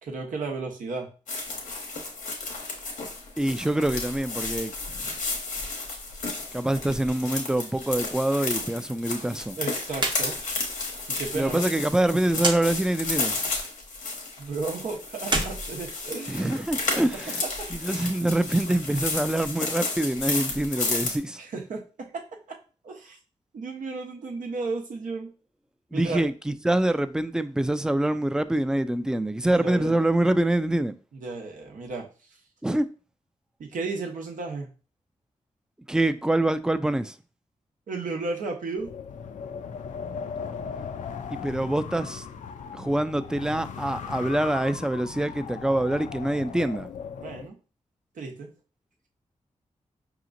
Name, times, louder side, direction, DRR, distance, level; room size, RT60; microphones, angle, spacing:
voice 1, 0.0-1.1 9.6-10.3 11.1-11.7 14.4-16.6 16.9-17.7 21.4-22.2 22.8-23.2 23.5-25.3 25.9-26.2 29.4-30.0 31.1-32.1 33.6-34.7 37.9-38.9 47.2-47.6 48.1-48.5, right 3 dB, 80° right, 0.8 m, -34 dB
sound 1, 1.3-21.2, left 3 dB, 90° left, 1.1 m, -32 dB
voice 2, 3.4-4.7 6.5-9.6 11.3-13.3 16.3-17.4 17.7-21.4 25.9-31.0 32.6-32.9 35.9-37.1 41.3-42.2 42.7-46.9, right 1 dB, 5° right, 0.3 m, -25 dB
sound 2, 9.9-10.2 10.5-10.6 12.4-12.6 15.2-16.5, right 2 dB, 35° right, 0.8 m, -28 dB
Wind, 38.8-47.5, left 6 dB, 70° left, 0.4 m, -38 dB
4.8 x 2.9 x 2.5 m
cardioid pair, 55°, 13 cm